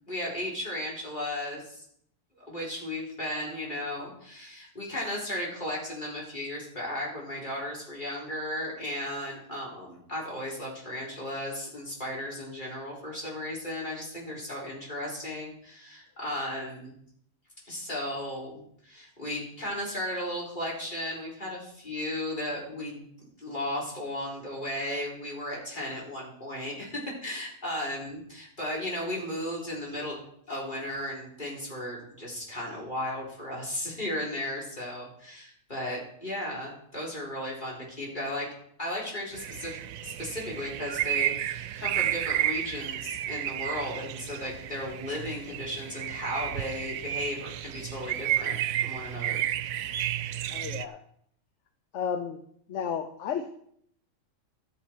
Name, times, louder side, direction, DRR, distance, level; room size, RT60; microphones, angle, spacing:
voice 1, 0.0-1.8 2.5-16.9 17.7-23.0 23.4-30.2 30.5-38.5 38.8-49.4, left 1 dB, 35° left, -4 dB, 4.4 m, -35 dB
sound 1, 39.3-50.9, right 12 dB, 85° right, 1.0 m, -32 dB
voice 2, 50.5-51.0 51.9-52.4 52.7-53.5, left 7 dB, 65° left, 9 dB, 1.0 m, -32 dB
13.0 x 7.9 x 4.6 m, 0.67 s
omnidirectional pair, 1.4 m